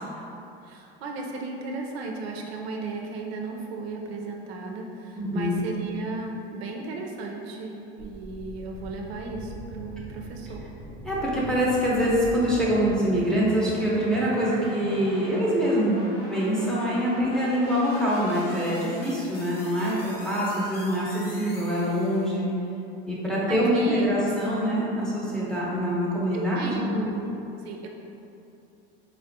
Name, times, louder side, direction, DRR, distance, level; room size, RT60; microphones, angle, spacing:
voice 1, 0.6-10.7 23.5-24.1 26.3-27.9, right 3 dB, 85° right, 1 dB, 0.5 m, -35 dB
voice 2, 5.2-5.6 11.0-16.0 16.3-22.5 23.1-27.0, equal, ahead, -7 dB, 0.8 m, -25 dB
sound 1, 8.0-22.4, equal, 70° left, 0.8 m, -41 dB
4.3 x 2.4 x 2.7 m, 2.8 s
hypercardioid pair, 100°, 30 cm